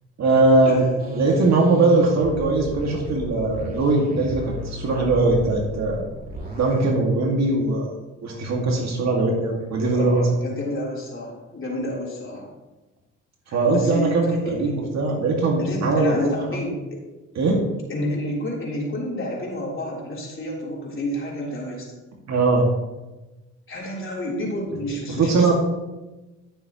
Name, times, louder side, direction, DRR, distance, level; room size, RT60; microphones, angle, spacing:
voice 1, 0.2-0.8 1.1-6.0 6.6-7.9 8.2-10.2 13.5-16.3 17.4-17.6 22.3-22.6 25.2-25.5, right 3 dB, 60° right, -1 dB, 2.1 m, -20 dB
sound 1, 1.0-6.9, left 1 dB, 30° right, 2.7 m, -33 dB
voice 2, 9.9-12.5 13.6-14.9 15.6-17.0 17.9-21.9 23.7-25.5, left 1 dB, 45° left, -4 dB, 3.7 m, -29 dB
14.5 x 7.1 x 3.1 m, 1.1 s
cardioid pair, 90°, 30 cm